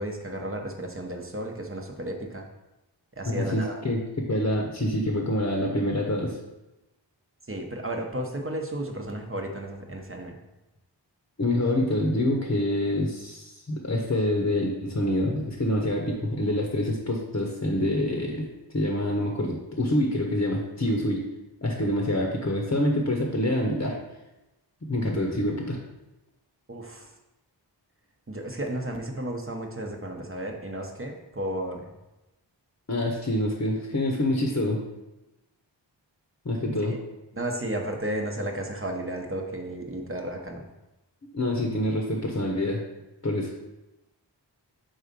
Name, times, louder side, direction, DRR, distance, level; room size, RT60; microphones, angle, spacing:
voice 1, 0.0-2.5 3.2-3.8 7.5-10.4 26.7-27.1 28.3-31.9 36.9-37.0 37.3-40.6, right 1 dB, 30° right, 2 dB, 0.9 m, -33 dB
voice 2, 3.4-6.4 11.4-18.5 18.7-21.2 21.6-24.0 24.8-25.8 32.9-34.8 36.4-37.0 41.3-42.8 43.2-43.5, left 1 dB, 35° left, 0 dB, 0.9 m, -26 dB
4.8 x 3.9 x 5.2 m, 1.0 s
wide cardioid pair, 55°, 44 cm